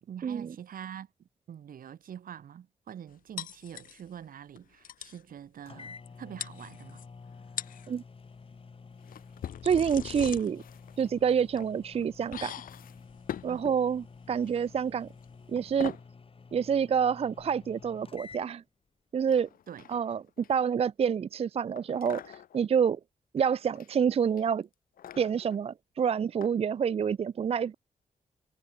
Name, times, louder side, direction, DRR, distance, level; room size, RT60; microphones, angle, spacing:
voice 1, 0.0-7.0 13.5-13.7 19.7-19.9, right 9 dB, 80° right, 2.0 m, -45 dB
sound 1, 3.4-4.2 4.6-4.7 4.8-5.2 6.1-6.2 6.4-7.1 7.4-7.9 9.1-15.7, left 10 dB, 75° left, 0.5 m, -43 dB
sound 2, 5.3-5.4 5.7-18.5, left 4 dB, 40° left, 2.4 m, -50 dB
sound 3, 9.0-10.0 10.4-11.1 11.9-12.1 12.7-13.8 14.5-14.8 15.1-15.3 15.6-16.1 17.4-18.2 19.3-20.8 21.8-22.6 23.4-23.9 24.3-25.6 26.4-26.5 27.1-27.2, left 10 dB, 90° left, 1.0 m, -45 dB
voice 2, 9.6-10.6 11.0-12.5 13.4-15.1 15.5-16.0 16.5-18.6 19.1-19.5 19.9-20.2 20.5-23.0 23.3-24.7 25.2-27.7, right 7 dB, 45° right, 0.4 m, -27 dB
cardioid pair, 95°, 14 cm